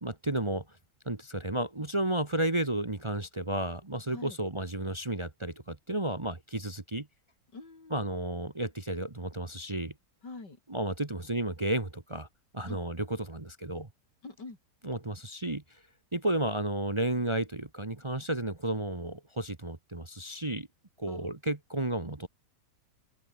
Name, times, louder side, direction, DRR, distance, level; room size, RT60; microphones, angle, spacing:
voice 1, 0.0-0.6 1.0-7.1 7.9-9.9 10.7-12.3 12.5-13.9 14.8-15.6 16.1-20.7 21.0-22.3, right 1 dB, 20° right, 1.2 m, -32 dB
voice 2, 7.5-8.1 10.2-10.6 12.7-12.8 14.2-14.6 21.1-21.4, left 3 dB, 80° left, 5.0 m, -45 dB
omnidirectional pair, 1.8 m